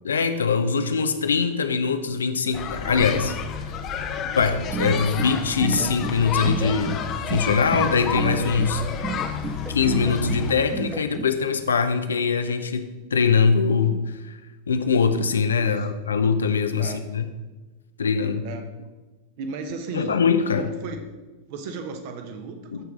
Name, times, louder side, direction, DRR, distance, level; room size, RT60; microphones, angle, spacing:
voice 1, 0.0-3.3 3.6-3.8 4.4-7.0 7.3-8.8 9.7-14.4 14.7-17.3 18.0-18.5 19.9-20.7 22.7-22.8, left 5 dB, 70° left, 9 dB, 0.6 m, -22 dB
Elementary school Playground, 2.5-10.5, left 6 dB, 35° left, 0.7 m, -30 dB
sound 1, 4.5-11.3, right 5 dB, 15° right, 0.3 m, -32 dB
Lawn tractor loop, 5.1-10.9, right 4 dB, 80° right, 2.4 m, -47 dB
voice 2, 15.6-15.9 16.8-17.0 18.4-18.7 19.4-20.2 20.5-21.0 21.5-22.8, right 4 dB, 50° right, 6 dB, 1.0 m, -35 dB
14.0 x 4.7 x 3.7 m, 1.2 s
figure-of-eight pair, 90°, 0 cm